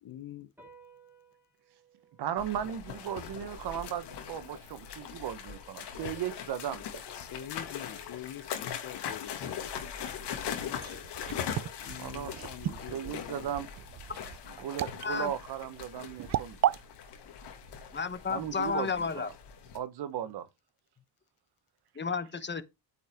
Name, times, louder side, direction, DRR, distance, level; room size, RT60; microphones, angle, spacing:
voice 1, 0.0-0.5 7.1-9.7 11.8-13.5 18.3-18.7, left 11 dB, 55° left, 0.9 m, -45 dB
sound 1, 0.6-7.3, right 4 dB, 5° right, 3.6 m, -63 dB
voice 2, 2.2-7.3 12.0-12.3 12.9-13.7 14.6-16.8 18.3-19.3 19.7-20.5, right 10 dB, 70° right, 1.1 m, -36 dB
sound 2, 2.4-19.8, left 8 dB, 80° left, 2.0 m, -41 dB
sound 3, 10.5-16.8, right 12 dB, 45° right, 0.4 m, -35 dB
voice 3, 15.0-15.3 17.9-19.3 22.0-22.6, left 5 dB, 25° left, 1.0 m, -32 dB
8.9 x 5.5 x 3.5 m
cardioid pair, 100°, 41 cm